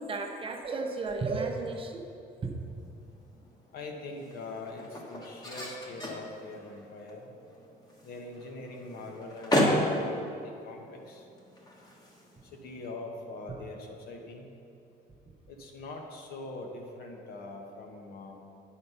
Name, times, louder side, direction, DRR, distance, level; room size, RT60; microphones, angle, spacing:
voice 1, 0.0-2.1 2.4-2.5, right 3 dB, 30° right, 3 dB, 0.8 m, -33 dB
sound 1, 2.6-13.0, equal, 25° left, 1.4 m, -35 dB
voice 2, 3.7-7.3 8.0-11.3 12.4-14.5 15.5-18.4, left 2 dB, 65° left, 1 dB, 1.2 m, -43 dB
9.3 x 4.3 x 5.5 m, 2.6 s
cardioid pair, 110°, 17 cm